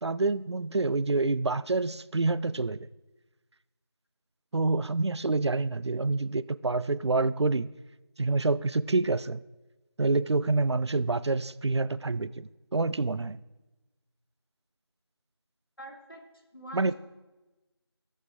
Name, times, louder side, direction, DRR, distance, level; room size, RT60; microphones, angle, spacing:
voice 1, 0.0-2.8 4.5-7.7 8.2-9.4 10.0-13.4 16.7-16.9, right 3 dB, 80° right, 17 dB, 0.4 m, -27 dB
voice 2, 15.8-16.3 16.5-16.9, right 1 dB, 55° left, 0 dB, 1.7 m, -45 dB
16.0 x 7.2 x 2.3 m, 1.1 s
figure-of-eight pair, 175°, 14 cm